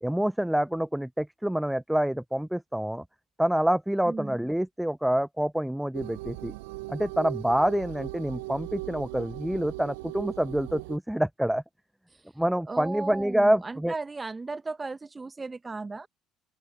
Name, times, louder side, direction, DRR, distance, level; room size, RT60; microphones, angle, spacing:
voice 1, 0.0-3.0 3.4-6.5 6.9-11.6 12.4-13.9, right 1 dB, 5° right, 0.5 m, -27 dB
voice 2, 4.1-4.4 12.1-12.2 12.7-16.1, right 3 dB, 25° right, 1.1 m, -36 dB
sound 1, 5.9-11.0, right 22 dB, 75° right, 0.4 m, -39 dB
open air
hypercardioid pair, 60°, 0 cm